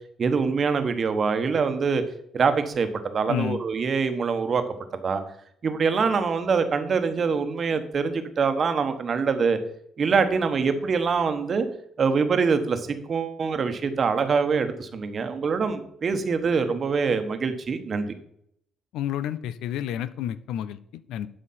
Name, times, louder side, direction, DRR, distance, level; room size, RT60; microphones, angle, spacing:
voice 1, 0.2-2.0 2.3-4.6 4.9-5.2 5.6-9.6 10.0-11.7 12.0-18.1, right 5 dB, 50° right, 8 dB, 1.1 m, -24 dB
voice 2, 3.3-3.6 18.9-21.3, left 10 dB, 90° left, 15 dB, 0.5 m, -30 dB
11.5 x 5.0 x 4.3 m, 0.69 s
cardioid pair, 90°, 0 cm